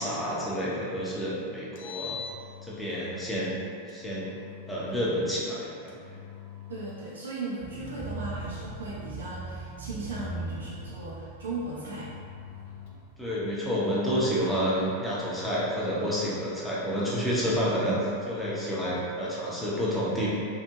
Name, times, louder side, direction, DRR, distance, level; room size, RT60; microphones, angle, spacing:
voice 1, 0.0-2.2 2.7-3.6 3.9-4.3 4.7-6.0 13.2-20.3, equal, 5° left, -8 dB, 0.7 m, -29 dB
Engine, 1.6-3.1 3.9-5.1 5.9-7.2 7.9-9.2 9.9-11.2 11.9-13.1, left 8 dB, 50° left, 0.4 m, -44 dB
voice 2, 6.7-12.1, right 2 dB, 70° right, -7 dB, 0.5 m, -37 dB
sound 1, 7.6-13.6, right 3 dB, 40° right, 0.9 m, -40 dB
2.8 x 2.5 x 2.3 m, 2.3 s
figure-of-eight pair, 90°, 0 cm